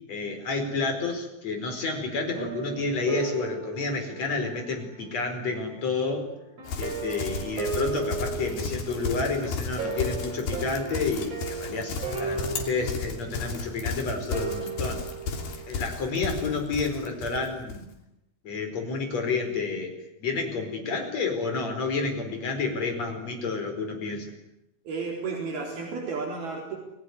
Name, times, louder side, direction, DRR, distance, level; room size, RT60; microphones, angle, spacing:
voice 1, 0.1-6.3 6.8-15.0 15.7-17.8 18.4-24.3, left 4 dB, 45° left, 4 dB, 5.7 m, -30 dB
sound 1, 2.3-5.2 6.6-15.8, right 5 dB, 40° right, 5.4 m, -36 dB
Livestock farm animals working animals, 6.7-17.9, left 4 dB, 75° left, 4.7 m, -34 dB
voice 2, 24.9-26.8, right 4 dB, 75° right, 0 dB, 5.9 m, -32 dB
29.0 x 20.0 x 9.7 m, 0.87 s
omnidirectional pair, 4.5 m